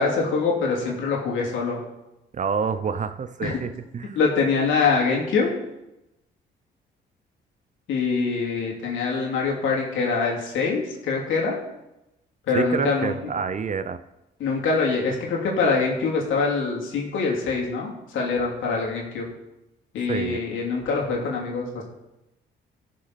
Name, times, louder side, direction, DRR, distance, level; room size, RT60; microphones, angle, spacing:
voice 1, 0.0-1.8 3.4-3.5 4.1-5.5 7.9-11.6 12.5-13.1 14.4-19.3 19.9-21.8, left 4 dB, 80° left, -2 dB, 2.8 m, -24 dB
voice 2, 2.3-4.2 12.5-14.0 20.1-20.4, right 6 dB, 40° right, 12 dB, 0.6 m, -27 dB
15.5 x 6.5 x 4.1 m, 0.93 s
cardioid pair, 90°, 20 cm